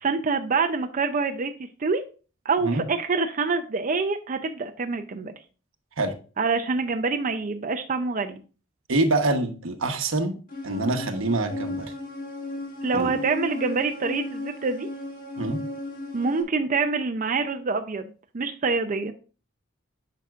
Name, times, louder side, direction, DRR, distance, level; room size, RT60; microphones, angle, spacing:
voice 1, 0.0-1.5 1.8-2.0 2.5-5.3 6.4-8.4 12.8-14.9 16.1-18.0 18.3-19.1, right 4 dB, 40° right, 6 dB, 0.5 m, -26 dB
voice 2, 8.9-10.4 10.6-11.9 12.9-13.2 15.4-15.6, right 2 dB, 85° right, 6 dB, 1.1 m, -25 dB
sound 1, 10.5-16.4, left 2 dB, 45° left, 1.3 m, -35 dB
9.1 x 5.8 x 2.4 m, 0.35 s
head